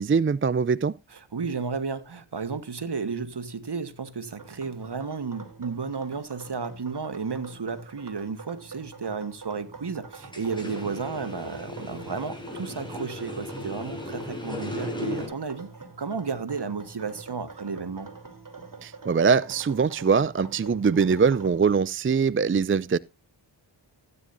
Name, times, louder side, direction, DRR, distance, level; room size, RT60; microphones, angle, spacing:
voice 1, 0.0-0.9 18.8-23.0, right 5 dB, 30° right, 0.4 m, -22 dB
voice 2, 1.1-15.7 16.0-18.1, right 5 dB, 60° right, 1.7 m, -33 dB
sound 1, 4.4-21.8, right 4 dB, 45° right, 3.4 m, -46 dB
sound 2, 10.2-15.3, left 2 dB, 10° left, 6.9 m, -36 dB
15.0 x 9.5 x 2.7 m
cardioid pair, 50°, 45 cm